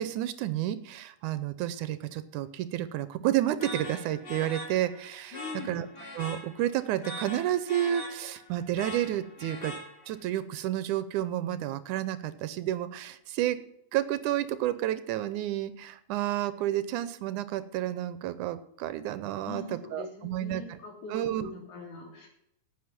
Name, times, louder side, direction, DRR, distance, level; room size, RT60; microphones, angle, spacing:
voice 1, 0.0-5.9 6.1-9.8 10.1-13.6 13.9-20.8 21.1-21.5, right 12 dB, 85° right, 14 dB, 2.2 m, -31 dB
sound 1, 3.6-10.3, left 1 dB, 35° left, 2.9 m, -42 dB
voice 2, 5.3-5.8 19.4-22.3, left 4 dB, 75° left, -1 dB, 4.6 m, -42 dB
9.6 x 8.3 x 9.6 m, 0.77 s
omnidirectional pair, 3.6 m